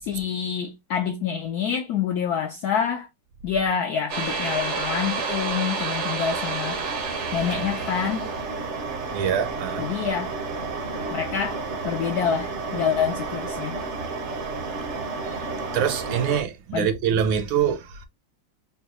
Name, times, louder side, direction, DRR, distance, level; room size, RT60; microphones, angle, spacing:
voice 1, 0.0-3.1 3.4-6.8 7.3-8.3 9.8-10.4 11.1-13.8 16.7-17.2, left 7 dB, 80° left, 0.8 m, -27 dB
sound 1, 4.1-16.4, right 4 dB, 60° right, 0.7 m, -30 dB
voice 2, 9.1-9.8 15.7-18.1, right 8 dB, 80° right, 1.3 m, -24 dB
3.9 x 2.2 x 2.8 m
omnidirectional pair, 2.2 m